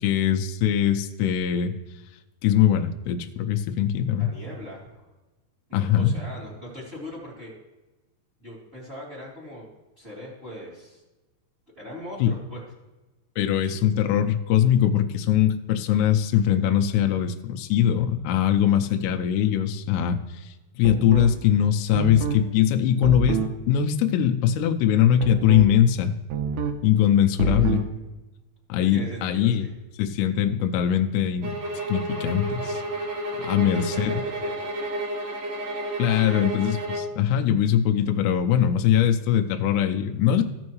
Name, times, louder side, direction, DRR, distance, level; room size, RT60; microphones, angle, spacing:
voice 1, 0.0-1.7 2.4-4.3 5.7-6.1 12.2-12.3 13.4-23.4 23.7-26.1 26.8-27.8 28.7-29.7 30.0-31.6 31.9-32.8 33.4-34.1 36.0-40.4, left 10 dB, 85° left, 5 dB, 2.5 m, -21 dB
voice 2, 4.2-5.1 5.7-7.5 8.4-9.7 10.0-11.0 11.8-12.6 13.7-13.8 27.4-27.9 28.9-29.7 33.6-34.5 36.1-36.5, left 1 dB, 15° right, -6 dB, 2.2 m, -40 dB
sound 1, 20.8-21.4 21.9-22.4 23.0-23.6 25.2-25.7 26.3-26.8 27.4-27.9, right 5 dB, 90° right, 3.0 m, -27 dB
sound 2, 31.4-37.2, right 1 dB, 60° right, 2.4 m, -31 dB
15.5 x 6.3 x 3.1 m, 1.1 s
omnidirectional pair, 5.3 m